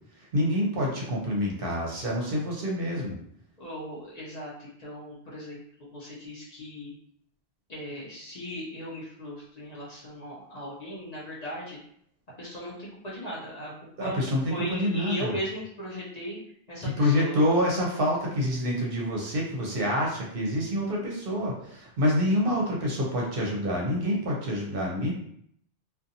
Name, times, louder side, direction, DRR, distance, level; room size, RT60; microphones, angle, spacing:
voice 1, 0.2-3.1 14.0-15.3 16.8-25.2, equal, 60° right, -2 dB, 0.8 m, -27 dB
voice 2, 3.6-7.0 7.7-11.8 12.4-13.7 14.0-16.4 16.7-17.4, equal, 45° left, -6 dB, 0.6 m, -37 dB
2.6 x 2.3 x 2.6 m, 0.68 s
omnidirectional pair, 1.1 m